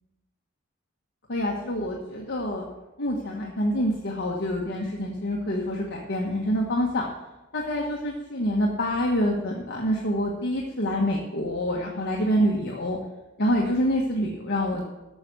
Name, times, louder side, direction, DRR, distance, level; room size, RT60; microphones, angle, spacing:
voice 1, 1.3-2.6 3.0-7.0 7.5-13.0 13.4-14.9, equal, 55° left, -1 dB, 1.4 m, -26 dB
12.5 x 6.7 x 6.2 m, 1.1 s
head